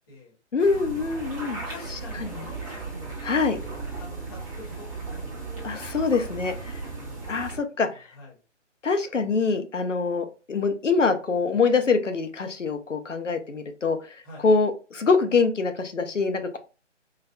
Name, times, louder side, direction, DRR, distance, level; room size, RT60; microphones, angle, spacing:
voice 1, 0.5-1.6 2.2-2.4 3.2-3.6 5.6-6.7 7.3-7.9 8.8-14.0 14.4-16.6, left 4 dB, 80° left, 7 dB, 0.8 m, -24 dB
sound 1, 0.6-7.6, right 3 dB, 25° right, 1.1 m, -36 dB
voice 2, 1.6-3.2 3.6-5.6 6.8-7.3 7.9-8.4 14.2-14.4, left 1 dB, 20° left, -4 dB, 1.1 m, -46 dB
4.6 x 2.2 x 2.2 m, 0.33 s
figure-of-eight pair, 145°, 37 cm